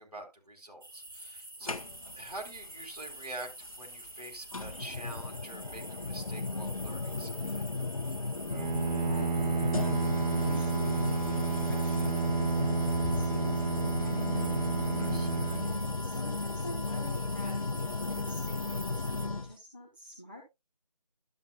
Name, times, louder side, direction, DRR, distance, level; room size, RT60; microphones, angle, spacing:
voice 1, 0.0-1.8 2.2-7.7 15.0-15.4, right 2 dB, 65° right, 2 dB, 3.5 m, -46 dB
sound 1, 0.8-19.3, right 1 dB, 35° right, 1.3 m, -47 dB
voice 2, 1.6-2.2 8.9-14.7 15.6-20.4, equal, 15° right, -2 dB, 0.8 m, -49 dB
sound 2, 1.7-2.3 3.6-3.7 4.5-19.5, left 3 dB, 55° left, 0.6 m, -35 dB
Bowed string instrument, 8.5-16.5, right 4 dB, 85° right, 0.5 m, -31 dB
12.0 x 7.9 x 2.3 m, 0.22 s
figure-of-eight pair, 170°, 21 cm